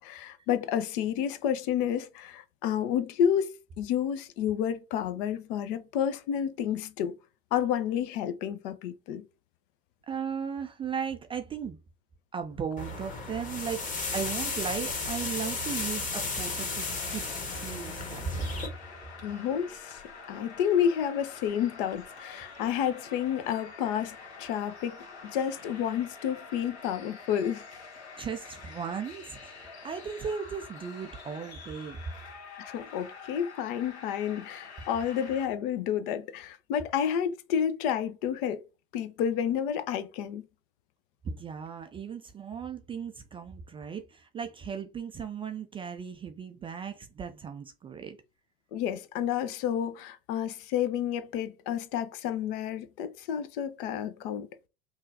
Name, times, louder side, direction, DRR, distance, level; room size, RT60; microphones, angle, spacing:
voice 1, 0.0-7.2 7.5-9.2 19.2-24.9 25.2-27.6 32.6-38.6 38.9-40.4 48.7-54.5, left 9 dB, 50° left, 0.7 m, -30 dB
voice 2, 10.1-11.8 12.3-17.2 17.5-18.5 28.2-32.0 41.2-48.2, right 6 dB, 15° right, 0.4 m, -36 dB
sound 1, 12.8-18.7, left 3 dB, 25° left, 1.3 m, -34 dB
sound 2, 15.6-35.5, left 4 dB, 70° left, 1.6 m, -47 dB
5.5 x 2.4 x 2.6 m
figure-of-eight pair, 75°, 33 cm